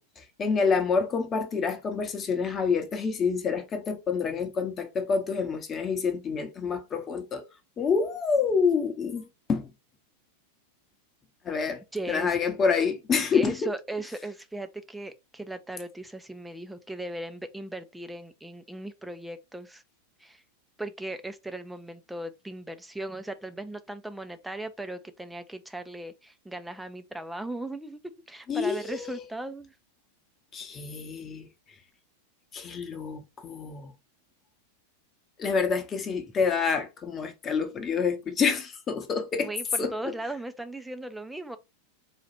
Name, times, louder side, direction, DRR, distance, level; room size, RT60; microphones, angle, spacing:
voice 1, 0.0-7.5 7.8-9.7 11.4-11.8 12.1-13.7 28.5-29.2 30.5-31.5 32.5-33.9 35.4-39.5 39.8-39.9, left 5 dB, 25° left, 0.9 m, -27 dB
voice 2, 11.9-12.3 13.3-19.8 20.2-20.4 20.8-28.0 28.3-29.7 39.4-41.6, right 1 dB, 5° right, 0.5 m, -37 dB
4.2 x 2.4 x 4.1 m
figure-of-eight pair, 90°, 0 cm